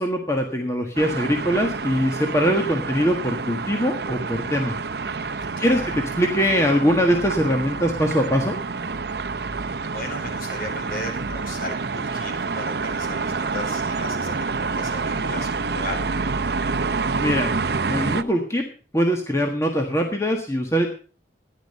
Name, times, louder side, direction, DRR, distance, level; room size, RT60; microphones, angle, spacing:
voice 1, 0.0-4.7 5.2-5.3 5.6-8.6 16.9-17.5 17.9-18.6 18.9-20.9, equal, 15° left, 2 dB, 1.5 m, -22 dB
sound 1, 1.0-18.2, right 4 dB, 60° right, 0.7 m, -28 dB
voice 2, 5.6-5.9 9.5-16.1, left 1 dB, 55° left, 2 dB, 4.9 m, -36 dB
14.5 x 10.5 x 5.5 m, 0.39 s
head